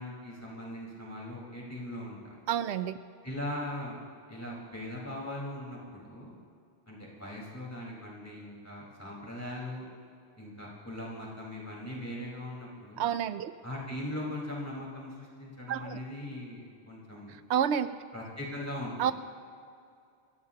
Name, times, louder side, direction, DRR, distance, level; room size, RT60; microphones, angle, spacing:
voice 1, 0.0-2.4 3.2-4.0 4.3-6.4 6.9-9.9 10.4-13.1 13.6-17.3 18.1-19.0, left 1 dB, 15° left, -5 dB, 4.3 m, -40 dB
voice 2, 2.5-3.0 13.0-13.5 15.7-16.0 17.5-17.9 19.0-19.1, right 9 dB, 85° right, 13 dB, 0.9 m, -29 dB
28.0 x 14.5 x 2.9 m, 2.4 s
omnidirectional pair, 1.1 m